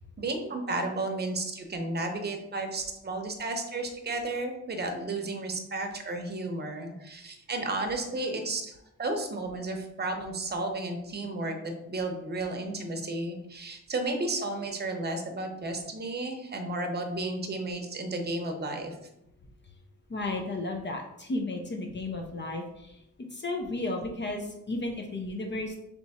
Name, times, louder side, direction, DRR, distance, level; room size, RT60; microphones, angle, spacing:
voice 1, 0.2-8.7 9.0-19.0, right 2 dB, 30° right, 4 dB, 0.8 m, -33 dB
voice 2, 20.1-23.0 23.3-25.8, left 2 dB, 35° left, 2 dB, 0.6 m, -33 dB
3.4 x 3.0 x 4.1 m, 0.83 s
cardioid pair, 85°, 31 cm